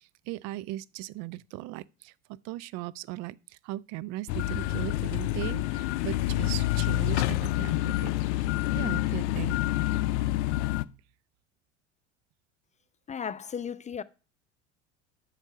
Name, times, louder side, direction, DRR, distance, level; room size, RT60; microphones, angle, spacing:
voice 1, 0.0-8.1 8.7-9.7, right 16 dB, 45° right, 0.4 m, -38 dB
sound 1, 4.3-10.8, left 16 dB, 65° left, 0.6 m, -28 dB
voice 2, 13.1-14.0, left 7 dB, 20° left, 0.4 m, -35 dB
8.7 x 5.8 x 6.8 m
hypercardioid pair, 75°, 37 cm